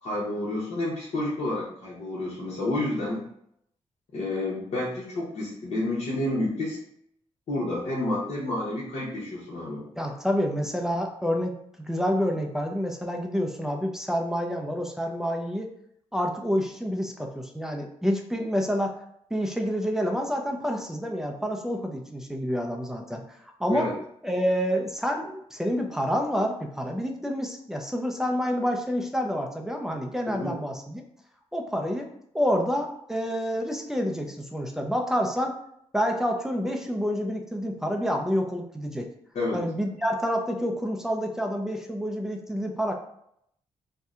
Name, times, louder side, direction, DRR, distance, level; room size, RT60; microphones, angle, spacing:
voice 1, 0.0-3.2 4.1-6.8 7.5-9.8 23.7-23.9 30.3-30.5 39.3-39.6, left 1 dB, 65° left, -6 dB, 0.9 m, -29 dB
voice 2, 10.0-11.6 11.9-15.7 16.1-19.0 19.3-23.2 23.6-23.9 24.2-31.0 31.5-32.1 32.3-35.5 35.9-39.1 39.5-42.9, equal, 5° right, 2 dB, 0.4 m, -28 dB
2.7 x 2.1 x 3.6 m, 0.71 s
cardioid pair, 110°, 12 cm